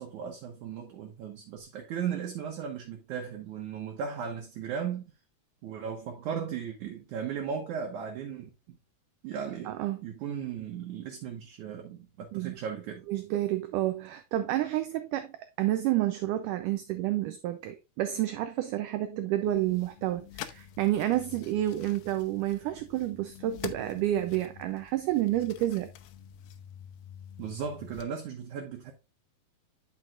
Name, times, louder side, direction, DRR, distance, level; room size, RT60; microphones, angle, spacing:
voice 1, 0.0-5.1 5.6-8.8 9.2-13.0 27.4-28.9, right 7 dB, 65° right, 2.2 m, -36 dB
voice 2, 9.6-10.0 12.3-12.5 13.1-25.9, right 14 dB, 90° right, 1.8 m, -29 dB
sound 1, 19.4-28.0, left 10 dB, 85° left, 2.5 m, -47 dB
9.8 x 6.3 x 2.4 m
omnidirectional pair, 4.4 m